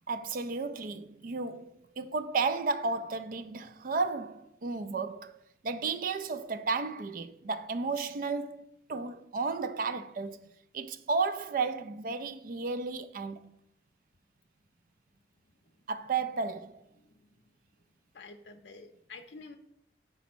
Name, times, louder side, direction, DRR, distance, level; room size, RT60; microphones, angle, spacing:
voice 1, 0.1-5.4 5.6-10.4 10.7-13.5 15.9-16.8, right 4 dB, 50° right, 0.4 m, -33 dB
voice 2, 17.0-17.3 18.1-19.6, left 3 dB, 75° left, 0.5 m, -49 dB
5.2 x 4.1 x 6.0 m
head